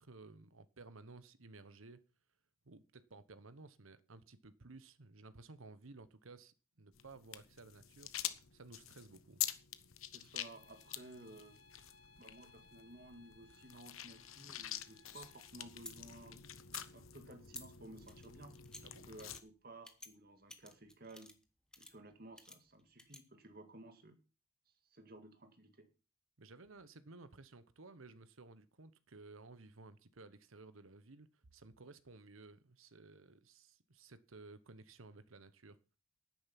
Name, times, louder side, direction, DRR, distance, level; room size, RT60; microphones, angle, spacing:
voice 1, 0.0-2.0 2.6-9.4 18.8-19.1 26.4-35.8, right 3 dB, 75° right, 1.1 m, -56 dB
sound 1, 6.9-19.4, left 12 dB, 80° left, 1.0 m, -47 dB
voice 2, 10.1-11.6 12.2-16.4 16.7-18.5 19.1-21.4 21.8-24.2 24.9-25.9, right 1 dB, 45° right, 1.9 m, -56 dB
sound 2, 10.4-15.5, left 4 dB, 55° left, 2.2 m, -65 dB
sound 3, 14.9-16.0 16.6-16.8 17.4-17.7 18.0-18.8 19.2-19.4 19.8-20.1 20.5-21.4 21.7-21.9 22.4-23.2, left 1 dB, 5° left, 1.1 m, -53 dB
10.5 x 9.6 x 5.9 m
head